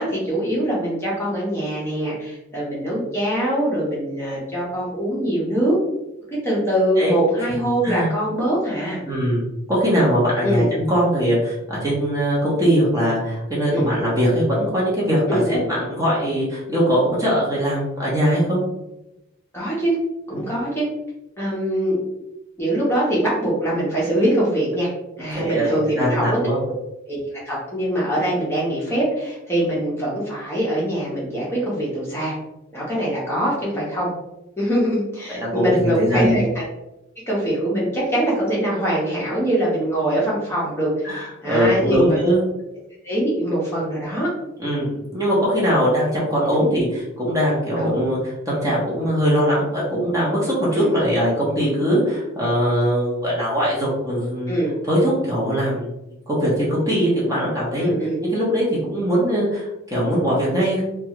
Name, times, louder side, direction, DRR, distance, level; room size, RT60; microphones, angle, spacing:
voice 1, 0.0-5.8 6.4-9.0 10.4-10.7 13.7-13.9 15.3-15.6 19.5-19.9 20.3-20.9 21.4-22.0 22.6-24.9 25.2-26.4 27.1-32.3 32.7-34.1 34.6-36.6 37.3-42.2 43.0-44.3 46.5-46.7 47.8-48.0 50.7-51.0 54.5-54.7 57.8-58.2, right 1 dB, 10° left, -6 dB, 0.8 m, -23 dB
voice 2, 9.1-18.6 20.3-20.4 25.3-26.6 35.3-36.3 41.0-42.4 44.6-54.5 54.9-55.9 56.3-57.9 58.2-60.8, equal, 15° right, -6 dB, 0.8 m, -21 dB
3.0 x 2.3 x 2.9 m, 0.91 s
head